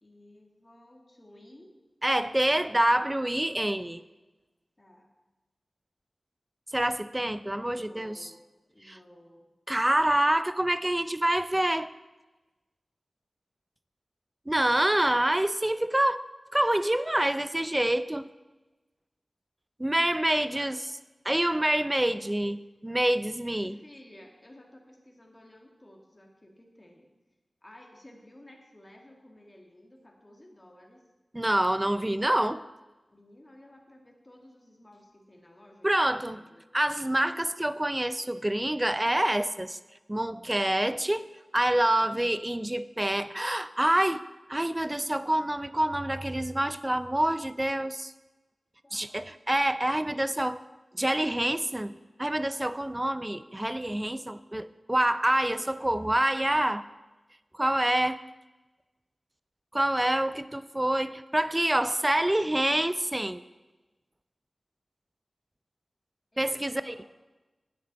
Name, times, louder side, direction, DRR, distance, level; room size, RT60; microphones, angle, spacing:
voice 1, 0.0-1.8 4.8-5.1 7.2-8.4 8.7-9.5 20.5-20.7 23.6-27.1 27.6-31.1 33.1-36.7 48.8-49.2 66.3-67.1, left 1 dB, 30° left, 1 dB, 1.8 m, -54 dB
voice 2, 2.0-4.0 6.7-8.2 8.9-9.0 9.7-11.9 14.5-16.2 16.5-18.3 19.8-20.8 21.3-23.8 31.3-32.6 35.8-36.4 36.7-39.8 40.1-44.2 44.5-48.1 48.9-50.6 51.0-56.8 57.5-58.2 59.7-63.4 66.4-66.9, right 1 dB, 20° right, 13 dB, 0.4 m, -27 dB
9.6 x 8.4 x 4.0 m, 1.1 s
wide cardioid pair, 60°, 0 cm